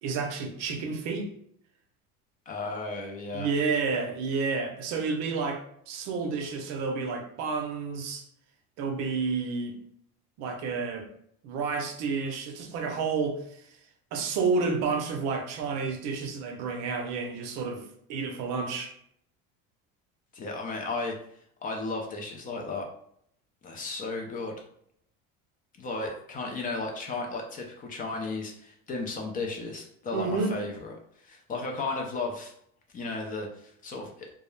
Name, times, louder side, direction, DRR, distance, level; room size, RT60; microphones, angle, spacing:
voice 1, 0.0-1.3 3.3-8.2 8.8-9.8 10.4-11.1 11.4-13.6 14.1-17.8 18.1-18.9 30.1-30.6, right 4 dB, 60° right, 5 dB, 0.5 m, -30 dB
voice 2, 2.5-3.5 20.3-21.2 21.6-22.9 23.6-24.6 25.8-30.9 31.2-32.5 32.9-34.1, left 3 dB, 30° left, 2 dB, 0.4 m, -34 dB
2.3 x 2.0 x 3.1 m, 0.68 s
cardioid pair, 135°, 30 cm